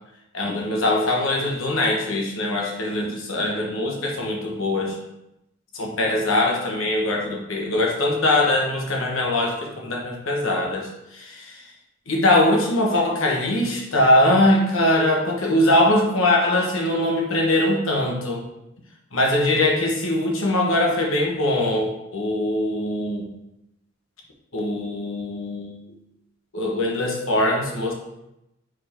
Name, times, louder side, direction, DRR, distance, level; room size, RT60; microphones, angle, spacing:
voice 1, 0.3-5.0 5.7-11.7 12.1-18.4 19.1-23.2 24.5-25.8 26.5-27.9, left 1 dB, 65° left, -1 dB, 1.2 m, -22 dB
4.8 x 4.5 x 4.4 m, 0.86 s
head